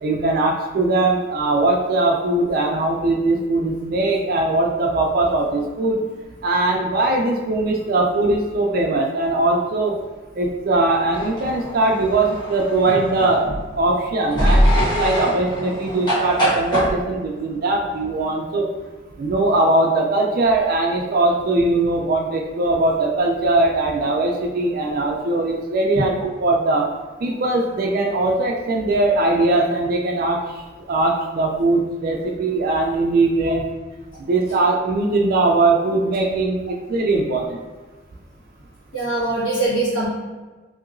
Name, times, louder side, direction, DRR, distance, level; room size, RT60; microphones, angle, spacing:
voice 1, 0.0-6.0 6.4-10.0 10.3-18.7 19.2-26.9 27.2-30.4 30.9-33.7 34.3-37.6, right 2 dB, 45° right, 0 dB, 0.3 m, -20 dB
sound 1, 11.1-13.7 14.3-16.9, equal, 20° left, 1.0 m, -22 dB
voice 2, 38.9-40.1, right 2 dB, 85° left, -8 dB, 1.4 m, -22 dB
3.0 x 2.8 x 2.5 m, 1.3 s
head